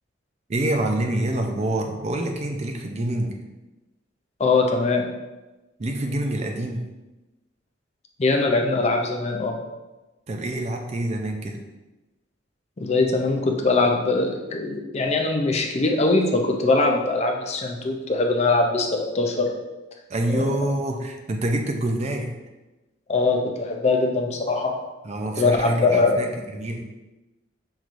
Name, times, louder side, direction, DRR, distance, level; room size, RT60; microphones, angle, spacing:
voice 1, 0.5-3.4 5.8-6.9 10.3-11.6 20.1-22.4 25.0-26.8, right 1 dB, 35° right, 3 dB, 0.4 m, -26 dB
voice 2, 4.4-5.1 8.2-9.6 12.8-19.5 23.1-24.7 25.4-26.2, left 3 dB, 35° left, 2 dB, 0.5 m, -22 dB
5.5 x 3.1 x 2.5 m, 1.1 s
head